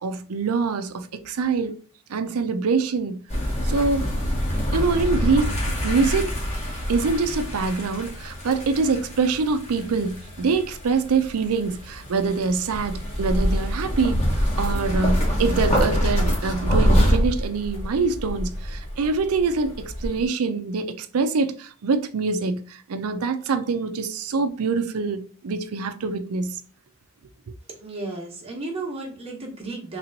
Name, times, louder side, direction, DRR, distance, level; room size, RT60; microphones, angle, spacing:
voice 1, 0.0-1.7 2.1-3.3 3.6-4.1 4.7-6.3 6.9-26.6, right 4 dB, 85° right, 0.5 m, -25 dB
sound 1, 3.3-20.2, equal, 30° left, 1.3 m, -25 dB
voice 2, 27.7-30.0, right 2 dB, 25° right, 1.1 m, -34 dB
3.3 x 3.0 x 3.9 m
head